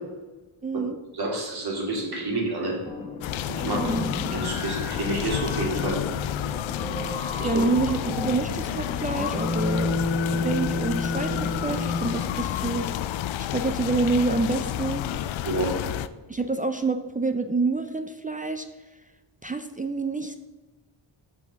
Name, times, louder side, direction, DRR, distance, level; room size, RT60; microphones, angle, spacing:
voice 1, 0.6-1.0 3.8-4.1 7.4-10.0 10.3-12.9 13.4-15.0 16.3-18.7 19.4-20.4, right 3 dB, 20° right, 8 dB, 0.4 m, -27 dB
voice 2, 1.1-2.8 3.5-3.9 4.3-6.0 7.4-7.6 15.4-15.7, right 2 dB, 50° right, -2 dB, 2.9 m, -29 dB
sound 1, 2.9-12.4, left 2 dB, 15° left, 1.4 m, -32 dB
sound 2, 3.2-16.1, left 12 dB, 75° left, 0.5 m, -30 dB
6.3 x 6.2 x 5.8 m, 1.2 s
cardioid pair, 85°, 48 cm